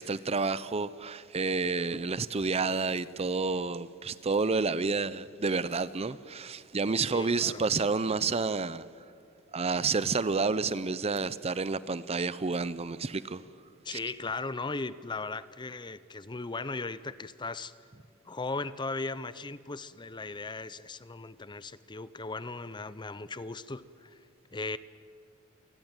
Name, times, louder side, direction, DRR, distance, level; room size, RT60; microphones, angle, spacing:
voice 1, 0.0-8.9 9.5-13.4 13.9-14.0, right 4 dB, 30° right, 0.6 m, -30 dB
voice 2, 7.0-7.6 13.8-17.7 18.3-24.2 24.5-24.8, left 3 dB, 25° left, 0.7 m, -37 dB
27.5 x 19.0 x 9.0 m
head